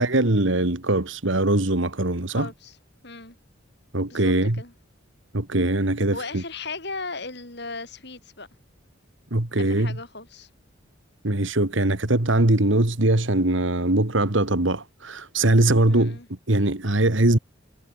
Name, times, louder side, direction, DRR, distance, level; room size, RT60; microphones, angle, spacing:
voice 1, 0.0-2.5 3.9-4.6 5.3-6.4 9.3-10.0 11.2-16.2 16.5-17.4, right 2 dB, 70° right, 2.1 m, -21 dB
voice 2, 2.3-3.4 4.1-4.7 6.1-8.5 9.6-10.5 15.9-16.3, left 3 dB, 55° left, 6.8 m, -37 dB
head